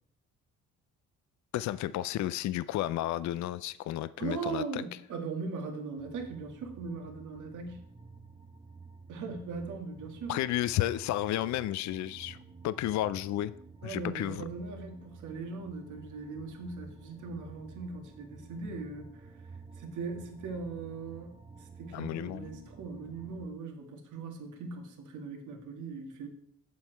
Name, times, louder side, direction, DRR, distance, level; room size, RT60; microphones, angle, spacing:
voice 1, 1.5-4.8 10.3-12.4 12.6-13.5 13.8-14.4 21.9-22.6, left 14 dB, 70° left, 0.4 m, -32 dB
voice 2, 4.2-7.8 9.1-10.4 13.8-19.4 19.8-26.3, right 4 dB, 75° right, 1.8 m, -39 dB
sound 1, 6.0-23.5, right 4 dB, 15° right, 0.6 m, -51 dB
7.9 x 7.4 x 4.5 m
cardioid pair, 90°, 30 cm